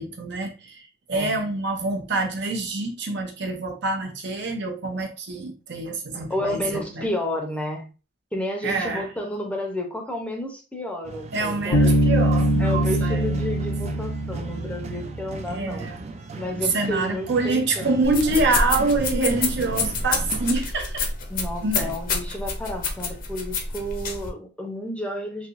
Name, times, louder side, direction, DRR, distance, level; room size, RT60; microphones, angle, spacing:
voice 1, 0.0-7.1 8.6-9.1 11.3-13.3 15.5-16.1 16.5-21.1 21.6-21.9, right 3 dB, 65° right, 0.7 m, -26 dB
voice 2, 6.3-7.9 8.3-11.9 12.6-15.9 16.4-18.0 21.3-25.5, left 1 dB, 5° left, 0.6 m, -31 dB
sound 1, 11.0-20.6, right 3 dB, 35° right, 0.4 m, -37 dB
Bass guitar, 11.7-15.4, equal, 85° left, 0.7 m, -22 dB
sound 2, 18.0-24.3, left 3 dB, 45° left, 0.6 m, -28 dB
3.3 x 2.7 x 2.5 m
head